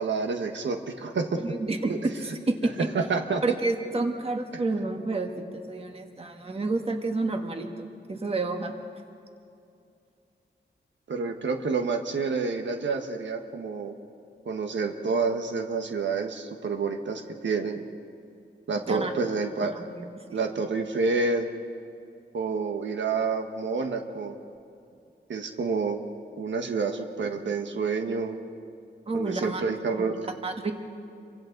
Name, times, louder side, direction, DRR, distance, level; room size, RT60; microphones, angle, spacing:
voice 1, 0.0-1.4 1.9-2.0 2.9-3.4 11.1-14.0 14.4-17.8 18.7-19.7 20.3-21.5 22.3-24.4 25.3-26.0 26.4-28.4 29.1-30.4, right 4 dB, 90° right, 4 dB, 1.4 m, -28 dB
voice 2, 1.4-2.9 3.4-8.7 18.9-19.1 19.6-20.4 29.1-29.6 30.4-30.7, right 2 dB, 30° right, 4 dB, 1.6 m, -30 dB
29.0 x 24.0 x 4.0 m, 2.5 s
wide cardioid pair, 165°, 18 cm